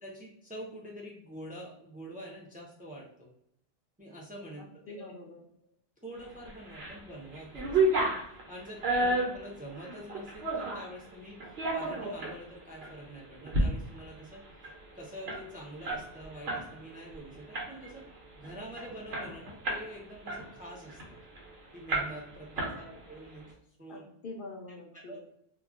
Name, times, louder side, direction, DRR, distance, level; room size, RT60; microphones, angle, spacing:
voice 1, 0.0-3.3 4.0-5.0 6.0-8.0 8.5-11.4 11.7-18.1 18.4-21.2 21.7-23.4 23.8-24.0 25.0-25.2, right 1 dB, 10° right, -3 dB, 0.5 m, -46 dB
voice 2, 4.6-5.4 8.9-9.2 22.6-23.0 23.9-25.2, left 2 dB, 65° left, 1 dB, 0.7 m, -46 dB
sound 1, 6.4-7.0 7.3-10.9 11.4-12.4 12.8-12.9 13.3-13.7 14.0-14.1 14.3-16.7 17.0-17.2 17.5-18.0 18.4-18.5 18.8-19.9 20.3-21.4 21.9-22.3 22.6-23.2, right 2 dB, 80° right, 1.0 m, -31 dB
2.3 x 2.2 x 3.6 m, 0.75 s
omnidirectional pair, 1.0 m